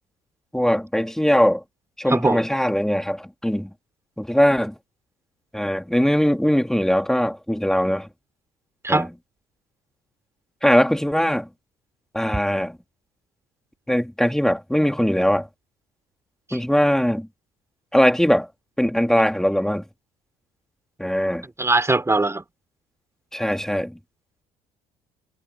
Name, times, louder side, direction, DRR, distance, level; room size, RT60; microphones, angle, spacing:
voice 1, 0.5-1.6 2.0-3.7 4.2-4.7 5.5-8.1 8.9-9.1 10.6-11.5 12.1-12.8 13.9-15.5 16.5-17.3 17.9-18.5 18.8-19.8 21.0-21.4 23.3-24.0, equal, 5° left, 2.8 m, -20 dB
voice 2, 2.1-2.5 8.8-9.1 16.5-16.6 21.6-22.4, right 2 dB, 15° right, 3.3 m, -21 dB
supercardioid pair, 70°, 17 cm